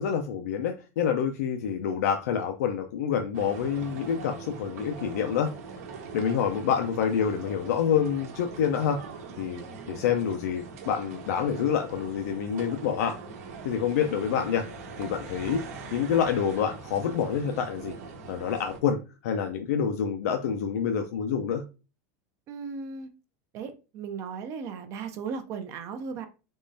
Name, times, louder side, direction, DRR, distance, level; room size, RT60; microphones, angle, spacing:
voice 1, 0.0-5.5 6.1-9.0 9.4-13.1 13.6-14.6 15.0-15.6 15.9-17.9 18.3-21.6, left 7 dB, 80° left, 0.5 m, -27 dB
sound 1, 3.3-18.8, right 4 dB, 80° right, 0.9 m, -42 dB
voice 2, 22.5-23.1 23.5-26.3, right 5 dB, 35° right, 0.4 m, -36 dB
3.6 x 3.0 x 2.6 m
supercardioid pair, 155°, 8 cm